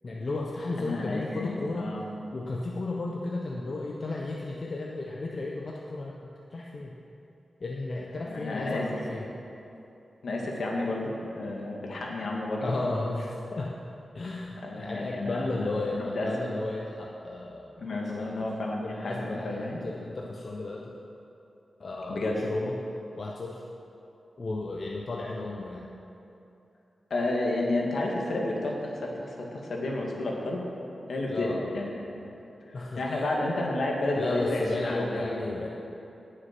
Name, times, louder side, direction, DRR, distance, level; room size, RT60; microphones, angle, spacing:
voice 1, 0.0-1.9 2.3-6.9 7.6-9.2 12.6-13.7 14.1-18.3 18.8-20.9 21.8-22.7 23.2-23.6 24.4-25.9 31.3-31.7 32.7-33.3 34.1-35.7, left 2 dB, 50° left, -2 dB, 1.0 m, -34 dB
voice 2, 0.8-2.0 8.2-8.9 10.2-12.7 14.6-16.3 17.8-19.8 22.1-22.4 27.1-30.6 31.1-31.9 32.7-35.4, left 2 dB, 70° left, -1 dB, 2.1 m, -31 dB
17.5 x 6.7 x 6.1 m, 2.8 s
wide cardioid pair, 100°, 0 cm